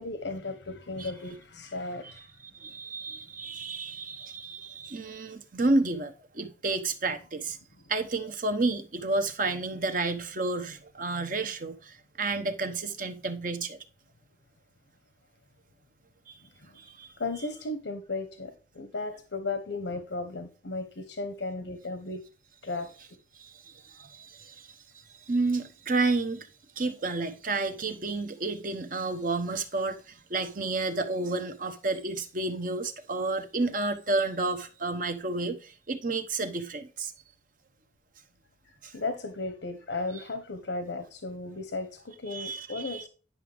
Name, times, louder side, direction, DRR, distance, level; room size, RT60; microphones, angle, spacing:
voice 1, 0.0-2.3 16.6-16.7 17.2-22.2 22.6-23.2 38.6-43.1, left 3 dB, 90° left, 1.1 m, -35 dB
voice 2, 2.5-7.6 7.9-13.8 16.3-16.4 16.8-17.1 23.3-24.8 25.1-26.5 26.8-37.1 38.8-38.9 42.3-43.0, right 3 dB, 50° right, 0.9 m, -31 dB
10.0 x 6.0 x 3.5 m
head